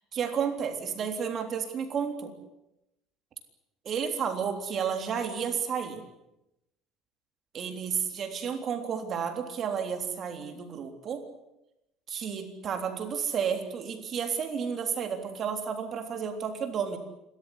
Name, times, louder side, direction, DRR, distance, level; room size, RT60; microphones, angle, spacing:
voice 1, 0.1-2.3 3.9-6.0 7.5-11.2 12.1-17.0, right 7 dB, 35° right, 6 dB, 3.5 m, -31 dB
29.5 x 14.0 x 10.0 m, 0.88 s
cardioid pair, 160°, 0 cm